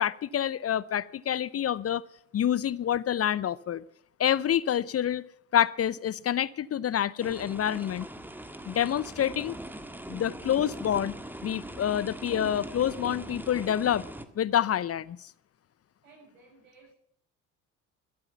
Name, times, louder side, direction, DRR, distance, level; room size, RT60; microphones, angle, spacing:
voice 1, 0.0-2.0 2.3-3.8 4.2-5.2 5.5-8.1 8.7-9.6 10.1-11.1 11.4-14.0 14.4-15.3, left 10 dB, 35° left, 0.7 m, -27 dB
sound 1, 7.2-14.3, right 1 dB, 5° right, 1.7 m, -41 dB
voice 2, 16.0-17.0, right 3 dB, 85° right, 6.6 m, -57 dB
13.0 x 12.5 x 5.9 m
hypercardioid pair, 55°, 39 cm